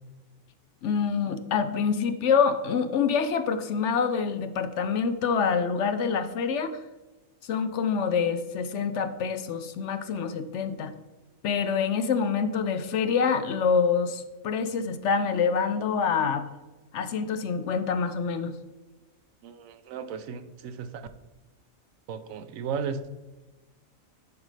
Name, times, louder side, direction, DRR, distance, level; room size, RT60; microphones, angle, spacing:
voice 1, 0.8-6.8 7.4-10.9 11.4-16.4 16.9-18.5, left 6 dB, 65° left, 10 dB, 0.8 m, -26 dB
voice 2, 19.4-21.1 22.1-23.0, right 6 dB, 75° right, 10 dB, 1.0 m, -35 dB
10.5 x 5.1 x 3.2 m, 1.1 s
omnidirectional pair, 1.4 m